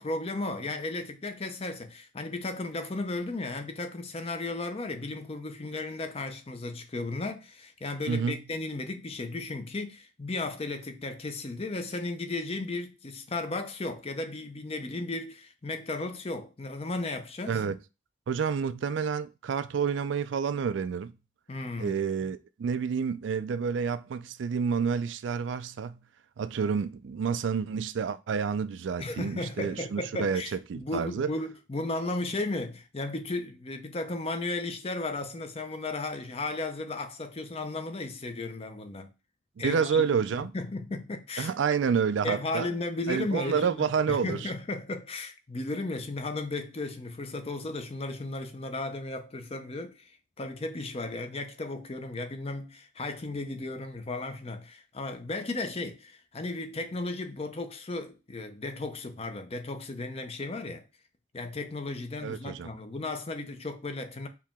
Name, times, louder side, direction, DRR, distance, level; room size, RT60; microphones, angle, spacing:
voice 1, 0.0-17.6 21.5-22.0 29.0-39.1 39.6-40.0 40.4-41.5 42.2-43.8 44.1-50.1 50.4-60.8 61.3-64.3, left 2 dB, 30° left, 0.6 m, -35 dB
voice 2, 8.1-8.4 17.5-17.8 18.3-21.1 21.8-26.0 26.4-30.4 30.7-31.3 39.6-40.5 41.4-42.7 43.1-44.5 62.2-62.7, right 6 dB, 70° right, 0.4 m, -29 dB
4.6 x 2.9 x 3.5 m
head